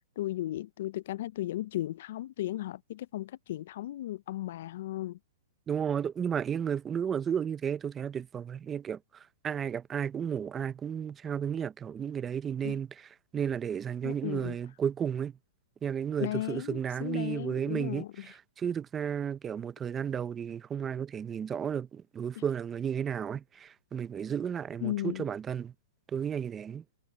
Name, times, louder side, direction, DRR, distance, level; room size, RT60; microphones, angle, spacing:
voice 1, 0.2-5.2 12.6-12.8 14.0-14.6 16.2-18.3 22.3-22.4 24.8-25.3, left 14 dB, 55° left, 0.4 m, -35 dB
voice 2, 5.7-9.0 9.4-12.9 13.3-15.3 15.8-18.0 18.6-25.7 26.1-26.8, right 8 dB, 15° right, 0.5 m, -33 dB
hypercardioid pair, 150°, 0 cm